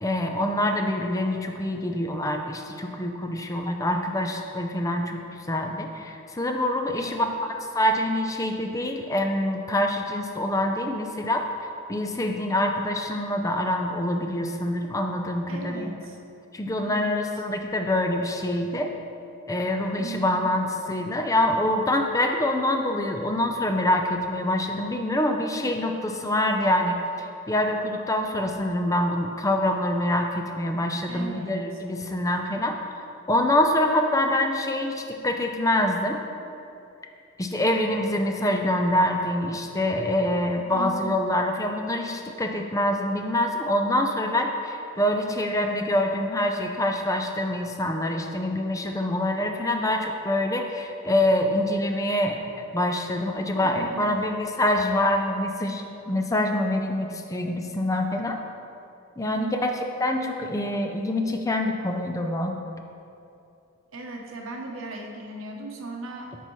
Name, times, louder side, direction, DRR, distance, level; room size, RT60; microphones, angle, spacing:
voice 1, 0.0-7.2 7.7-11.4 11.9-15.9 16.5-18.9 19.5-32.8 33.3-36.2 37.4-52.4 52.7-58.4 59.2-59.7 60.0-62.6, left 1 dB, 15° left, 3 dB, 0.5 m, -25 dB
voice 2, 6.9-7.3 15.5-16.2 16.8-17.2 20.0-20.5 31.1-31.7 40.7-41.1 53.4-54.4 59.3-59.7 63.9-66.4, right 3 dB, 75° right, 1 dB, 0.9 m, -37 dB
9.7 x 5.4 x 3.1 m, 2.6 s
head